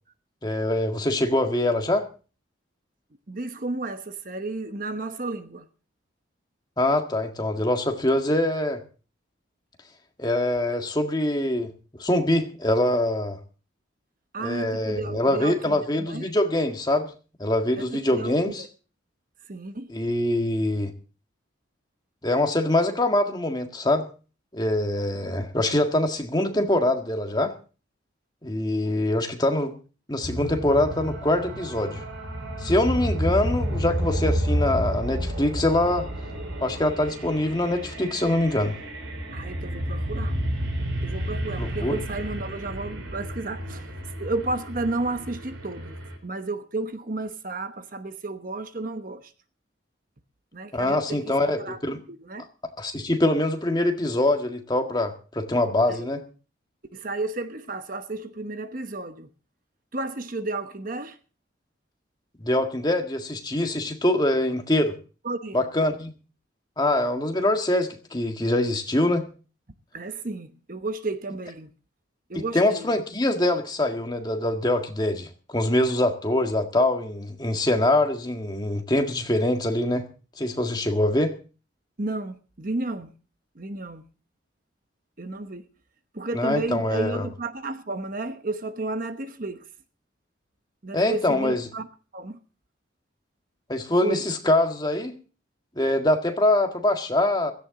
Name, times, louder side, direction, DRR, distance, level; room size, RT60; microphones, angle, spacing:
voice 1, 0.4-2.1 6.8-8.8 10.2-11.7 12.0-13.4 14.4-17.1 17.4-18.6 19.9-20.9 22.2-24.1 24.5-27.5 28.4-29.7 30.1-32.0 32.6-36.1 36.6-38.8 41.6-41.9 50.7-52.0 52.8-56.2 62.4-65.0 65.5-66.1 66.8-69.2 72.3-80.0 80.4-81.3 86.3-87.2 90.9-91.6 93.7-95.1 95.8-97.5, left 1 dB, 20° left, 1.7 m, -24 dB
voice 2, 3.3-5.7 14.3-16.3 17.8-18.7 19.5-19.9 39.3-40.4 41.0-43.9 44.2-49.3 50.5-51.8 52.1-52.5 55.9-56.1 56.9-59.3 59.9-61.2 65.2-65.7 69.9-71.7 72.3-72.9 82.0-83.1 83.5-84.1 85.2-85.7 86.1-89.7 90.8-91.9 92.1-92.4 94.0-94.2, right 2 dB, 45° right, 1.0 m, -32 dB
sound 1, 30.2-46.2, equal, 85° right, 4.6 m, -31 dB
16.5 x 15.0 x 3.8 m
head